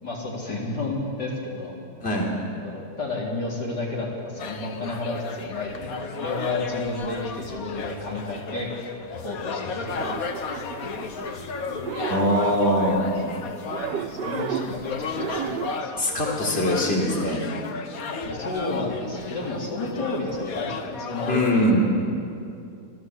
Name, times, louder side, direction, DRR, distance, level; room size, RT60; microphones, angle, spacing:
voice 1, 0.0-1.8 2.6-8.7 9.2-9.9 10.8-11.8 14.1-15.9 18.2-21.6, left 2 dB, 75° left, -3 dB, 4.6 m, -31 dB
sound 1, 4.4-21.7, left 4 dB, 60° left, 1.6 m, -33 dB
sound 2, 9.9-11.4 11.7-13.0 13.7-14.8 15.1-15.8, right 9 dB, 90° right, 1.4 m, -33 dB
voice 2, 12.1-13.1 16.0-17.4 21.3-21.9, equal, 35° left, -3 dB, 4.1 m, -22 dB
27.0 x 18.5 x 8.2 m, 2.5 s
omnidirectional pair, 1.8 m